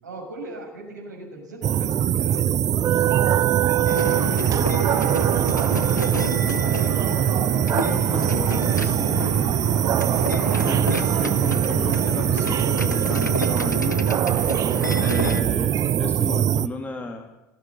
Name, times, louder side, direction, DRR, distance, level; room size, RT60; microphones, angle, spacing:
voice 1, 0.0-3.2 3.8-5.1 6.6-7.6 8.2-9.0, right 2 dB, 75° right, 1 dB, 6.6 m, -40 dB
sound 1, 1.6-16.7, right 10 dB, 35° right, 0.8 m, -22 dB
sound 2, 3.9-15.4, left 2 dB, 90° left, 1.0 m, -31 dB
voice 2, 7.7-9.3 10.6-14.0 15.0-17.3, left 3 dB, 15° left, 4 dB, 2.2 m, -34 dB
19.0 x 15.5 x 9.8 m, 1.0 s
figure-of-eight pair, 70°, 9 cm